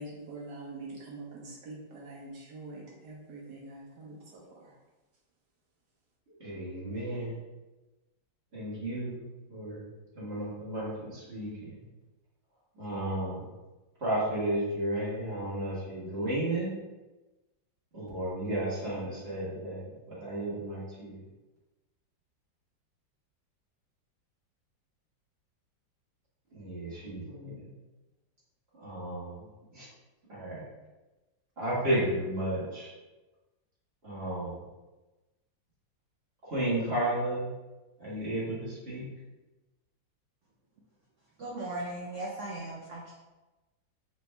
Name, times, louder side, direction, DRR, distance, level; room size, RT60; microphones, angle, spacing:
voice 1, 0.0-4.7, right 2 dB, 65° right, -4 dB, 1.7 m, -44 dB
voice 2, 6.3-7.3 8.5-9.2 9.5-9.8 10.1-11.8 12.7-13.5 14.0-16.7 17.9-21.2 26.5-27.7 28.7-29.5 29.7-29.9 30.3-30.6 31.6-32.9 34.0-34.6 36.4-37.5 38.0-39.0, right 1 dB, 35° right, -9 dB, 1.6 m, -33 dB
voice 3, 41.4-43.1, right 2 dB, 85° right, -3 dB, 0.6 m, -37 dB
4.3 x 3.1 x 3.3 m, 1.1 s
omnidirectional pair, 2.1 m